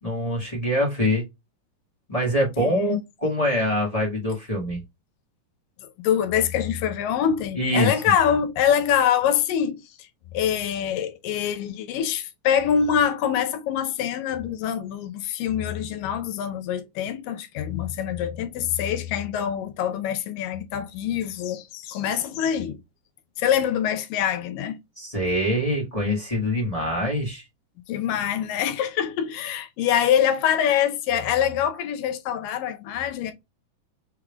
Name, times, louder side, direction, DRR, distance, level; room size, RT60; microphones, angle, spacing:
voice 1, 0.0-1.2 2.1-4.8 7.6-7.9 25.0-27.4, equal, 30° left, 0.6 m, -24 dB
voice 2, 2.6-2.9 6.0-9.8 10.3-22.8 23.4-24.8 27.9-33.3, left 9 dB, 80° left, 2.3 m, -24 dB
6.2 x 3.4 x 2.3 m
omnidirectional pair, 4.0 m